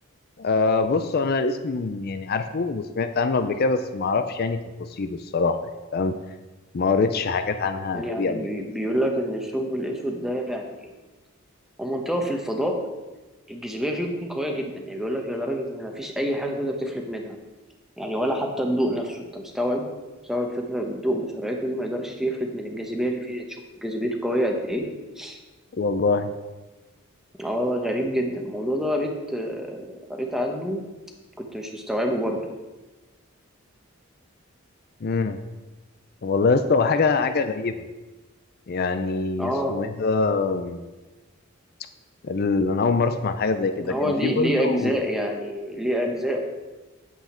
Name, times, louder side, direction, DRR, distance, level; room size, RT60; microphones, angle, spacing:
voice 1, 0.4-5.6 5.9-6.1 6.7-8.5 25.7-26.3 35.0-35.4 36.2-37.8 38.7-40.8 42.2-45.0, left 4 dB, 50° left, 9 dB, 0.4 m, -24 dB
voice 2, 7.9-10.9 11.8-12.7 13.5-17.4 18.0-19.8 20.2-24.8 25.2-25.4 27.4-30.8 31.4-32.4 39.4-39.8 43.8-46.4, equal, ahead, 2 dB, 1.0 m, -27 dB
8.3 x 7.9 x 4.4 m, 1.2 s
head